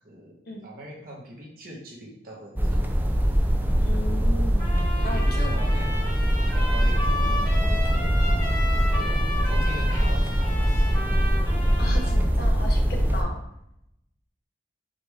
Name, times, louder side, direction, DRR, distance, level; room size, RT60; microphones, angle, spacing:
voice 1, 0.0-0.4 0.6-2.9 5.0-6.0 6.5-7.2 8.8-9.2 9.4-10.9, equal, 55° right, -2 dB, 1.0 m, -41 dB
sound 1, 2.6-13.2, equal, 10° right, 0.4 m, -22 dB
voice 2, 3.8-4.7 5.0-5.6 7.3-7.8 11.8-13.4, left 1 dB, 60° left, 1 dB, 0.8 m, -36 dB
Trumpet, 4.6-12.2, left 1 dB, 20° left, 1.2 m, -34 dB
5.1 x 2.5 x 3.2 m, 0.80 s
head